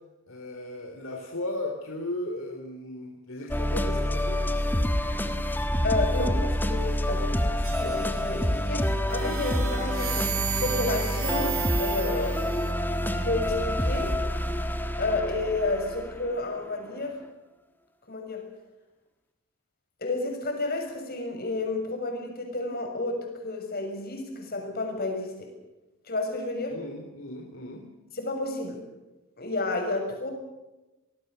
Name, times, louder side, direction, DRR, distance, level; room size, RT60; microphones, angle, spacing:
voice 1, 0.3-4.5 26.7-27.9, left 1 dB, 65° left, 2 dB, 3.1 m, -36 dB
sound 1, 3.5-16.7, equal, 10° left, 1.4 m, -27 dB
voice 2, 5.8-12.5 13.1-14.1 15.0-17.2 18.1-18.4 20.0-25.5 26.1-26.8 28.1-28.8 29.4-30.3, left 2 dB, 45° left, 3 dB, 6.6 m, -31 dB
sound 2, 7.6-8.6 9.1-12.7, right 10 dB, 70° right, 4.2 m, -35 dB
26.5 x 20.0 x 6.7 m, 1.0 s
head